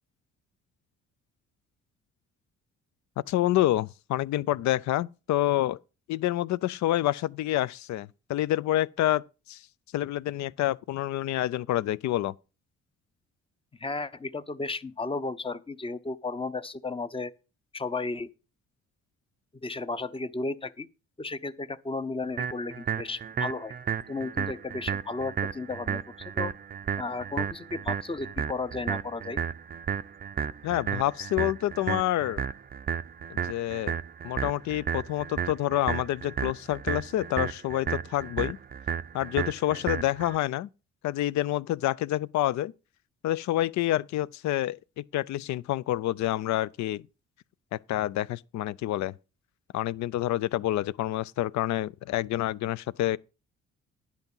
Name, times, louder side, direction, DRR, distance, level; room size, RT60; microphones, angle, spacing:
voice 1, 3.3-5.8 6.1-9.6 9.9-12.3 30.6-32.4 33.3-34.0 34.2-38.6 39.1-40.7 41.0-42.7 43.2-47.0 47.7-49.1 49.7-53.2, left 14 dB, 65° left, 0.5 m, -28 dB
voice 2, 13.8-17.3 17.7-18.3 19.6-20.9 21.2-23.7 24.1-26.0 26.4-26.5 27.0-29.4, left 3 dB, 20° left, 0.7 m, -34 dB
sound 1, 22.4-40.4, right 7 dB, 30° right, 0.5 m, -33 dB
10.5 x 5.9 x 5.4 m
cardioid pair, 90°, 30 cm